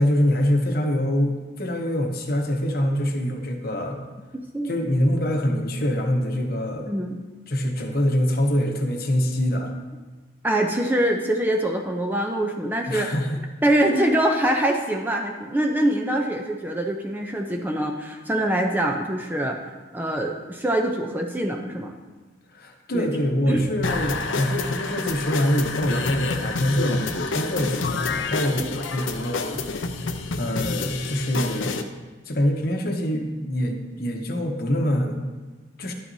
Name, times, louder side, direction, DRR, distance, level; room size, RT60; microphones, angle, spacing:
voice 1, 0.0-4.0 4.6-7.0 7.5-9.7 12.9-13.4 22.5-29.7 30.4-31.7 32.3-35.2 35.8-35.9, equal, 50° left, 3 dB, 1.0 m, -24 dB
voice 2, 10.4-13.1 13.6-19.6 19.9-21.9 22.9-23.1 23.5-23.7 28.6-28.7, right 1 dB, 10° right, 2 dB, 0.5 m, -24 dB
sound 1, 23.8-31.8, left 4 dB, 90° left, 0.6 m, -28 dB
11.5 x 8.9 x 2.7 m, 1.3 s
head